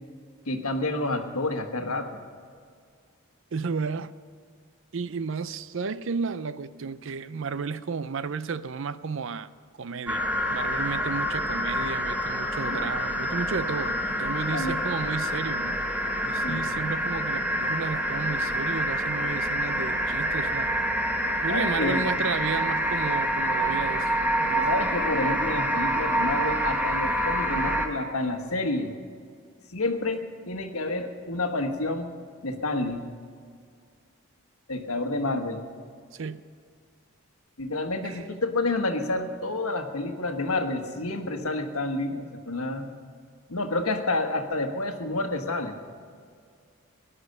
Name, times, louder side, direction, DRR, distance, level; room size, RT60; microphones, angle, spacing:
voice 1, 0.5-2.2 12.7-12.9 14.5-14.8 16.4-16.7 21.5-22.1 24.5-28.9 29.7-32.1 32.4-33.1 34.7-35.6 37.6-42.9 43.5-45.8, left 2 dB, 75° left, 1.4 m, -29 dB
voice 2, 3.5-4.1 4.9-9.5 9.8-15.8 16.2-20.7 21.4-24.7 36.1-36.4 38.0-38.2, right 5 dB, 60° right, 0.5 m, -33 dB
sound 1, 10.1-27.9, right 1 dB, 5° right, 1.1 m, -27 dB
18.5 x 11.0 x 6.6 m
head